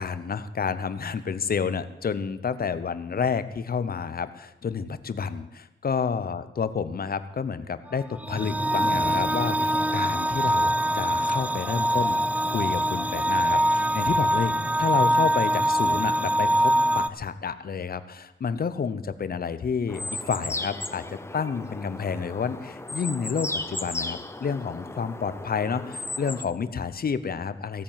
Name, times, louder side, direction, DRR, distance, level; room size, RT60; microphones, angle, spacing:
voice 1, 0.0-14.5 14.8-27.8, left 6 dB, 50° left, 13 dB, 0.8 m, -30 dB
sound 1, 8.0-17.1, right 1 dB, 5° right, 0.4 m, -24 dB
sound 2, 19.9-26.4, left 2 dB, 15° left, 0.7 m, -35 dB
16.5 x 8.9 x 7.5 m, 0.90 s
wide cardioid pair, 170°, 20 cm